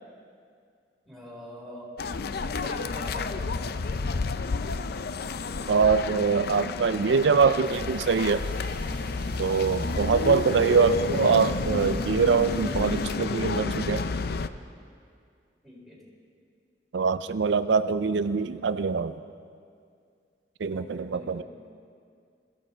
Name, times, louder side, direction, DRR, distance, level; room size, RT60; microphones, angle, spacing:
voice 1, 1.0-1.9 2.3-3.5 15.6-16.0 20.7-21.4, equal, ahead, -5 dB, 4.2 m, -44 dB
sound 1, 2.0-14.5, left 4 dB, 60° left, 0.5 m, -30 dB
voice 2, 5.7-8.5 9.4-14.0 16.9-19.1 20.6-21.4, right 5 dB, 85° right, 12 dB, 0.4 m, -24 dB
sound 2, 7.6-13.2, right 1 dB, 30° right, 1.1 m, -39 dB
21.5 x 14.5 x 4.5 m, 2.3 s
head